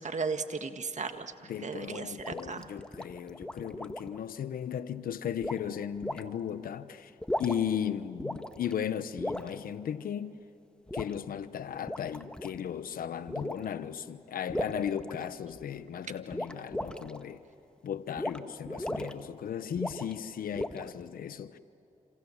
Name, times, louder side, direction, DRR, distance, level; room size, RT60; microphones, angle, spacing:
voice 1, 0.0-1.3 1.6-2.7, right 4 dB, 55° right, 1.8 m, -35 dB
voice 2, 1.4-7.1 7.4-10.4 10.9-17.4 17.8-21.6, left 9 dB, 85° left, 1.0 m, -36 dB
sound 1, 1.9-4.2 5.4-5.6 6.0-6.2 7.1-7.8 8.2-8.7 9.2-9.5 10.9-11.1 11.7-12.6 13.3-13.7 14.5-15.6 16.3-17.2 18.2-18.4 18.6-19.1 19.8-20.2 20.5-21.0, left 1 dB, 5° left, 1.6 m, -36 dB
28.0 x 27.0 x 7.2 m
cardioid pair, 55°, 14 cm